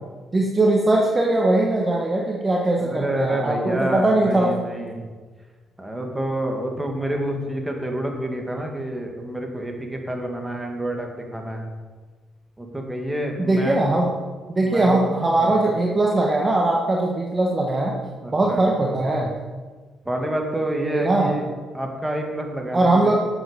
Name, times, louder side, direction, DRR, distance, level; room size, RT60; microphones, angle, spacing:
voice 1, 0.3-4.5 13.5-14.1 14.5-17.9 18.3-19.3 20.9-21.4 22.7-23.2, right 2 dB, 25° right, -1 dB, 1.5 m, -20 dB
voice 2, 2.8-5.0 5.8-11.7 12.6-14.0 14.6-15.1 15.6-15.7 18.2-18.6 20.1-21.4 21.7-23.2, right 1 dB, 10° right, 2 dB, 2.2 m, -28 dB
12.0 x 8.0 x 5.4 m, 1.4 s
cardioid pair, 90°, 0 cm